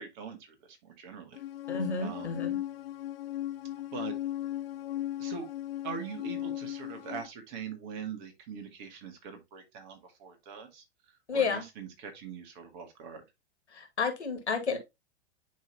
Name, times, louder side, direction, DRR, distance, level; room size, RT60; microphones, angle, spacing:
voice 1, 0.0-1.4 2.0-2.4 3.9-4.1 5.2-5.5 5.8-13.3, right 6 dB, 45° right, 1.9 m, -42 dB
sound 1, 1.4-7.3, left 13 dB, 60° left, 0.6 m, -37 dB
voice 2, 1.7-2.5 11.3-11.6 13.7-14.8, left 5 dB, 80° left, 2.1 m, -30 dB
10.0 x 3.4 x 2.8 m
figure-of-eight pair, 100°, 33 cm